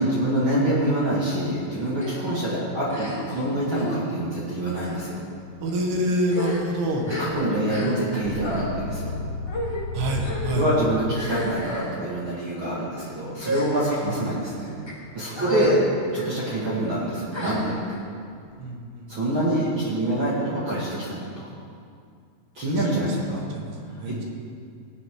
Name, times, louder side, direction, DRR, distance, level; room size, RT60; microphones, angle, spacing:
voice 1, 0.0-5.2 7.2-9.1 10.5-14.8 15.1-15.8 16.1-17.7 19.1-21.4 22.5-23.4 23.9-24.2, right 1 dB, 40° right, -8 dB, 2.0 m, -25 dB
sound 1, 2.0-2.2 2.9-3.4 3.7-4.0 4.7-5.0 5.7-5.8 6.2-8.1 8.4-8.7 9.5-9.8 10.2-10.6 11.1-11.9 12.6-12.9 13.3-14.0 14.6-14.9 15.3-15.8 16.1-16.3 17.3-18.0, equal, 20° left, 0.7 m, -32 dB
voice 2, 5.6-7.0 7.8-8.0 9.9-10.7 15.4-15.7 18.6-19.1 22.7-24.2, right 1 dB, 75° right, 0 dB, 3.4 m, -28 dB
sound 2, 8.2-11.2, left 4 dB, 85° left, 2.9 m, -34 dB
17.5 x 10.0 x 3.7 m, 2.3 s
omnidirectional pair, 4.8 m